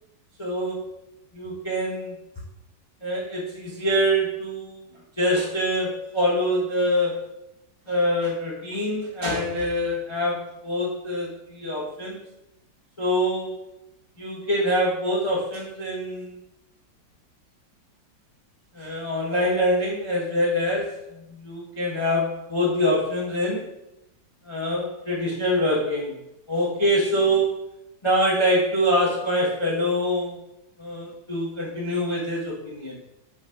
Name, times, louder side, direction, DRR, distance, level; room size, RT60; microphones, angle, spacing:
voice 1, 0.4-0.9 1.3-2.2 3.0-4.8 5.2-7.2 7.9-12.2 13.0-13.6 14.2-16.4 18.7-23.7 24.4-26.2 26.5-27.6 28.0-30.4 30.8-33.0, equal, 20° left, -4 dB, 1.0 m, -25 dB
6.3 x 5.2 x 5.2 m, 0.87 s
omnidirectional pair, 2.0 m